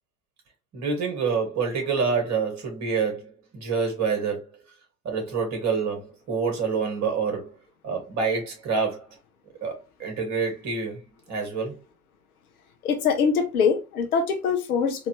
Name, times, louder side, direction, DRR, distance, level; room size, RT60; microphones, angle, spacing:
voice 1, 0.7-4.5 5.0-7.5 7.8-9.1 9.6-9.7 10.0-11.8, right 5 dB, 35° right, 2.6 m, -27 dB
voice 2, 12.8-15.1, left 6 dB, 70° left, 1.1 m, -23 dB
4.4 x 2.9 x 3.1 m
figure-of-eight pair, 80°, 45 cm